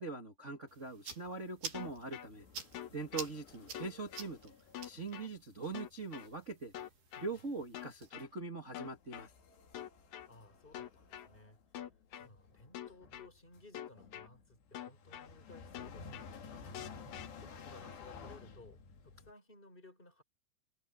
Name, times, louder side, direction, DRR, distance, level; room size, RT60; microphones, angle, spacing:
voice 1, 0.0-2.4 2.9-4.5 4.8-6.7 7.2-9.3, right 3 dB, 45° right, 0.9 m, -42 dB
sound 1, 0.7-8.1, right 6 dB, 65° right, 5.5 m, -50 dB
sound 2, 1.7-5.2 5.6-5.9 6.2-6.5 6.9-7.0 7.3-7.6 8.2-8.3 8.6-19.3, left 5 dB, 80° left, 5.5 m, -54 dB
sound 3, 1.7-2.3 2.7-3.3 3.7-4.3 4.7-5.3 5.7-6.3 6.7-7.3 7.7-8.3 8.7-9.3 9.7-10.3 10.7-11.3 11.7-12.3 12.7-13.3 13.7-14.3 14.7-15.3 15.7-16.3 16.7-17.3, left 11 dB, 65° left, 2.0 m, -45 dB
voice 2, 10.3-11.6 12.2-16.5 17.4-20.2, left 2 dB, 10° left, 6.6 m, -58 dB
omnidirectional pair, 4.8 m